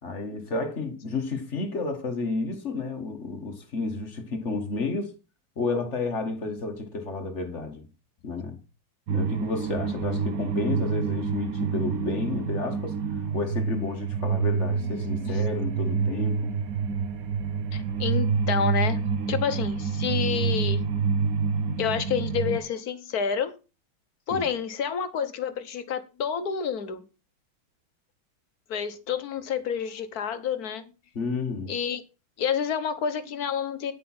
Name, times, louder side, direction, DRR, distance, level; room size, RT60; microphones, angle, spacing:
voice 1, 0.0-5.1 5.6-7.9 8.2-8.6 9.1-13.0 13.3-16.6 24.3-24.5 31.1-31.7, left 3 dB, 40° left, 1.7 m, -31 dB
sound 1, 9.1-22.6, right 5 dB, 55° right, 1.1 m, -27 dB
voice 2, 17.7-20.8 21.6-23.5 24.3-27.0 28.7-30.9 31.7-32.0 32.4-33.9, left 7 dB, 55° left, 1.4 m, -29 dB
9.8 x 8.9 x 4.4 m
omnidirectional pair, 2.2 m